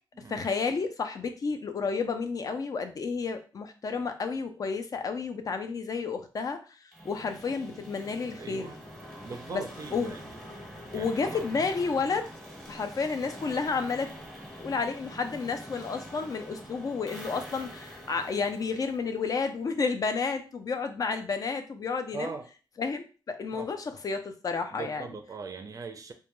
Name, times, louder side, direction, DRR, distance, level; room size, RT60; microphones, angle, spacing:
voice 1, 0.3-6.6 7.0-8.7 9.5-9.6 9.9-10.2 10.9-12.3 12.7-14.1 14.6-22.3 22.8-25.1, left 4 dB, 45° left, 7 dB, 0.4 m, -31 dB
sound 1, 6.9-19.8, equal, ahead, 0.8 m, -45 dB
voice 2, 8.4-8.8 9.2-10.4 10.9-11.5 22.1-22.5 23.5-23.7 24.7-26.1, right 4 dB, 40° right, 6 dB, 0.4 m, -40 dB
2.2 x 2.2 x 2.9 m, 0.35 s
wide cardioid pair, 110°, 8 cm